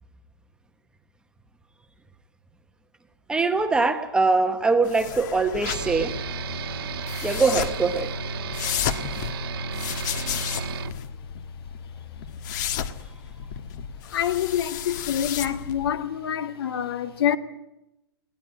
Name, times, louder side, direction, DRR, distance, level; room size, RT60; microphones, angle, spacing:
voice 1, 3.3-6.2 7.2-8.1, right 3 dB, 5° right, 1.1 m, -22 dB
sound 1, 4.8-15.9, left 8 dB, 45° left, 1.5 m, -33 dB
sound 2, 5.7-10.9, right 5 dB, 65° right, 1.6 m, -33 dB
voice 2, 14.1-17.4, left 10 dB, 65° left, 1.9 m, -26 dB
21.5 x 18.0 x 8.8 m
hypercardioid pair, 150°, 13 cm